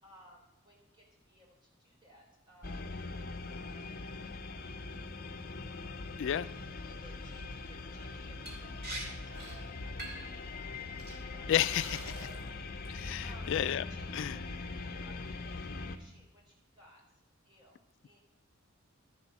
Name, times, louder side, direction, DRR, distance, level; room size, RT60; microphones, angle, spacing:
voice 1, 0.0-4.0 6.9-10.9 11.3-12.8 13.2-13.5 13.9-17.0 17.4-18.2, equal, 20° right, -2 dB, 4.0 m, -60 dB
sound 1, 2.6-16.0, left 3 dB, 45° left, 0.7 m, -42 dB
Liquid, 8.5-8.6 8.8-9.0 9.3-9.6 10.0-10.3 11.0-11.1 11.6-12.5 12.8-13.3, right 1 dB, 45° right, 2.7 m, -44 dB
voice 2, 11.5-12.3 12.9-13.8 14.1-14.4, left 10 dB, 60° left, 14 dB, 0.3 m, -31 dB
12.5 x 7.5 x 5.8 m, 0.96 s
head